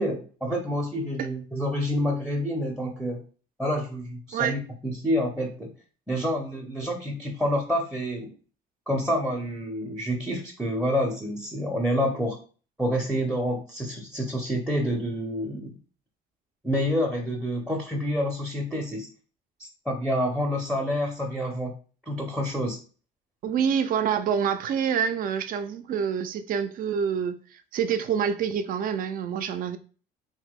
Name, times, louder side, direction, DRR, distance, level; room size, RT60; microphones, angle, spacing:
voice 1, 0.0-3.2 3.6-5.7 6.1-8.3 8.9-12.4 12.8-15.7 16.6-19.1 19.6-21.7 22.1-22.8, equal, 5° right, 0.6 m, -28 dB
voice 2, 23.4-29.8, right 7 dB, 55° right, 0.4 m, -27 dB
2.8 x 2.2 x 3.5 m
cardioid pair, 110°, 17 cm